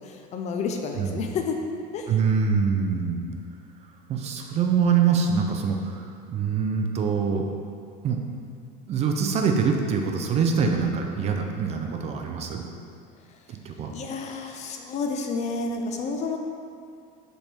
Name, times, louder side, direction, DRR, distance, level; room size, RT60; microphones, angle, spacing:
voice 1, 0.0-1.6 1.9-2.2 13.9-16.4, left 4 dB, 35° left, 4 dB, 0.5 m, -30 dB
voice 2, 2.1-3.2 4.1-6.0 6.3-7.4 8.0-8.2 8.9-12.6 13.6-13.9, right 6 dB, 30° right, 3 dB, 0.5 m, -24 dB
5.4 x 4.4 x 4.2 m, 2.2 s
cardioid pair, 150°, 20 cm